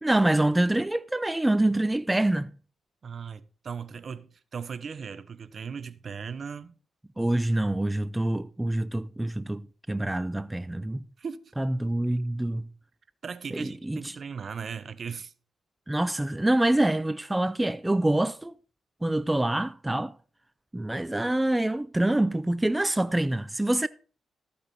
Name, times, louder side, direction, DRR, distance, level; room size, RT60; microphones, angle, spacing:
voice 1, 0.0-2.5 7.2-11.0 11.6-12.7 13.5-14.2 15.9-18.5 19.0-20.1 20.7-23.9, right 1 dB, 10° right, 0.5 m, -26 dB
voice 2, 3.0-6.7 11.2-11.4 13.2-15.3, right 6 dB, 50° right, 0.8 m, -38 dB
14.0 x 8.5 x 4.2 m
cardioid pair, 80°, 0 cm